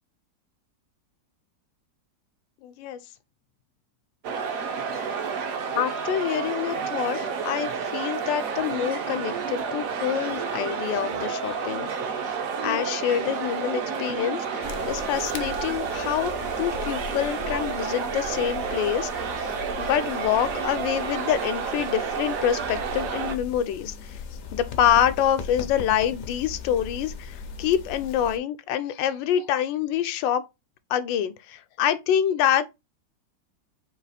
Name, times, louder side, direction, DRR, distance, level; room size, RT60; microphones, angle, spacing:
voice 1, 2.6-3.0 5.7-11.9 12.6-16.3 16.6-19.5 19.8-24.2 24.5-30.4 30.9-32.7, left 10 dB, 85° left, 1.3 m, -26 dB
sound 1, 4.2-23.4, right 6 dB, 60° right, 0.9 m, -30 dB
sound 2, 14.6-28.4, left 5 dB, 70° left, 0.8 m, -39 dB
4.0 x 2.4 x 4.0 m
omnidirectional pair, 2.0 m